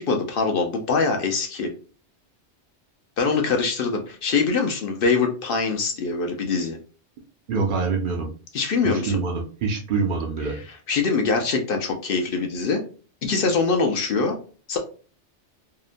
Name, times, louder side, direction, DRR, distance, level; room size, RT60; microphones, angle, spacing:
voice 1, 0.0-1.7 3.2-6.8 8.5-9.2 10.5-12.8 13.2-14.4 14.7-14.8, left 4 dB, 60° left, 3 dB, 0.6 m, -23 dB
voice 2, 7.5-8.3 8.8-10.6, right 4 dB, 60° right, -1 dB, 0.6 m, -25 dB
2.8 x 2.1 x 2.4 m, 0.38 s
omnidirectional pair, 1.2 m